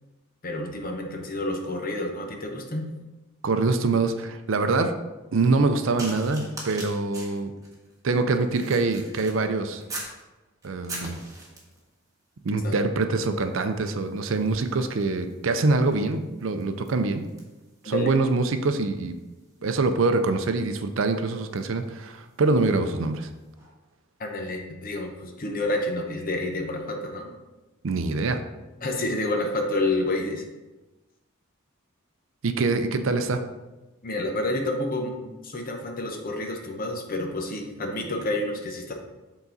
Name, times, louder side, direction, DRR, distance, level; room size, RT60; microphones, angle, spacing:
voice 1, 0.4-2.9 12.5-12.7 17.8-18.1 24.2-27.3 28.8-30.4 34.0-38.9, left 2 dB, 45° left, 2 dB, 0.9 m, -29 dB
voice 2, 3.4-4.9 5.3-7.5 8.0-9.8 10.6-11.2 12.4-17.2 17.8-19.1 19.6-23.3 27.8-28.4 32.4-33.4, right 3 dB, 65° right, 8 dB, 0.5 m, -24 dB
sound 1, 6.0-10.2 10.6-11.9 12.6-12.9 13.2-22.9 23.6-23.7, right 2 dB, 15° right, 1.4 m, -44 dB
7.2 x 3.9 x 4.0 m, 1.1 s
head